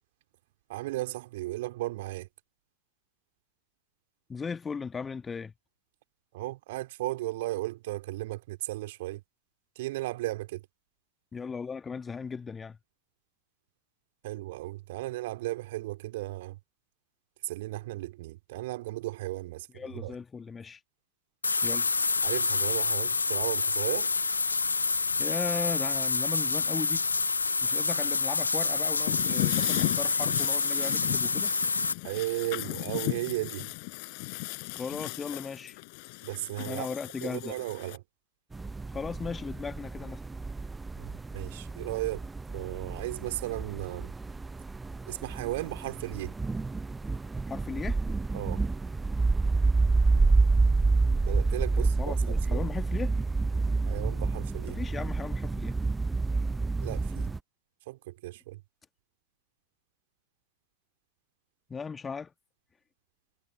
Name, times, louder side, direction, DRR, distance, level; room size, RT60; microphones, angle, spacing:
voice 1, 0.7-2.3 6.3-9.2 9.7-10.6 14.2-16.6 17.4-20.1 22.2-24.1 32.0-33.7 36.2-36.9 37.2-38.0 41.0-42.2 42.5-44.1 45.1-46.3 48.3-48.6 51.2-52.7 53.9-54.8 56.8-57.3 57.9-58.6, right 18 dB, 50° right, 3.2 m, -35 dB
voice 2, 4.3-5.5 11.3-12.8 19.7-20.8 21.6-21.9 25.2-27.1 27.6-31.5 34.7-35.8 36.7-37.5 38.9-40.2 47.5-48.0 51.8-53.1 54.8-55.8 61.7-62.3, left 5 dB, 15° left, 1.8 m, -37 dB
sound 1, 21.4-31.9, left 4 dB, 80° left, 0.9 m, -28 dB
sound 2, 29.1-38.0, left 30 dB, 45° left, 5.7 m, -35 dB
sound 3, 38.5-57.4, right 3 dB, 10° right, 0.8 m, -28 dB
figure-of-eight pair, 90°, 0 cm